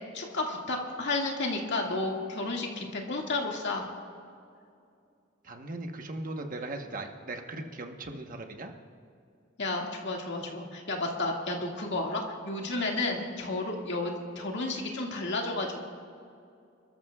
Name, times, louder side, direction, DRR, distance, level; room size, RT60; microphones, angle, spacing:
voice 1, 0.1-3.9 9.6-15.8, left 2 dB, 60° left, 0 dB, 2.0 m, -32 dB
voice 2, 5.4-8.7, right 2 dB, 45° right, 4 dB, 1.1 m, -38 dB
28.5 x 13.5 x 2.4 m, 2.4 s
head